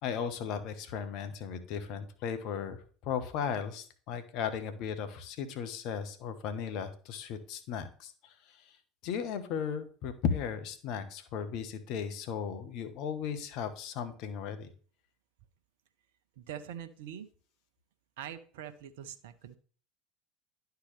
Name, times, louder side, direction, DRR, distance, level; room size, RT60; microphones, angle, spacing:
voice 1, 0.0-8.7 9.0-14.7, left 7 dB, 55° left, 9 dB, 1.1 m, -36 dB
voice 2, 16.4-17.3 18.2-19.6, right 9 dB, 70° right, 11 dB, 0.7 m, -43 dB
11.5 x 4.6 x 3.3 m, 0.43 s
figure-of-eight pair, 70°, 0 cm